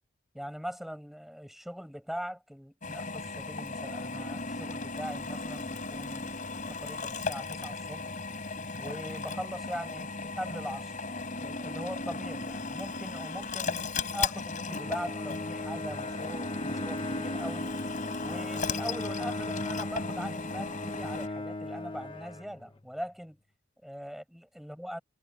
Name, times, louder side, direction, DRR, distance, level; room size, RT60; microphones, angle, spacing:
voice 1, 0.3-6.4 6.7-8.1 8.8-11.1 11.4-17.7 18.2-23.4 23.8-25.0, equal, ahead, 6.0 m, -41 dB
Drill, 2.8-21.3, left 3 dB, 40° left, 4.3 m, -36 dB
Bowed string instrument, 14.7-22.9, left 2 dB, 25° left, 0.9 m, -38 dB
head